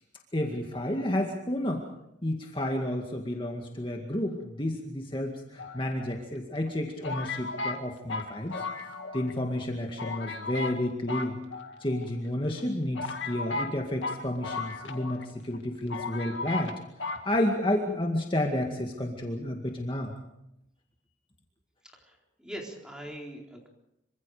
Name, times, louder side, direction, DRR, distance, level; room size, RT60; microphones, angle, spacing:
voice 1, 0.3-1.9 2.2-8.6 9.1-11.4 11.8-16.7 17.0-20.1, left 1 dB, 25° left, 1 dB, 2.1 m, -31 dB
sound 1, 5.6-6.3 7.0-9.3 9.6-9.7 10.0-10.8 11.1-12.1 12.6-12.7 13.0-15.3 15.5-15.6 15.9-16.7 17.0-17.2, left 3 dB, 90° left, 2.2 m, -35 dB
voice 2, 21.9-23.7, equal, 5° right, 0 dB, 4.2 m, -42 dB
26.5 x 25.0 x 5.1 m, 0.85 s
head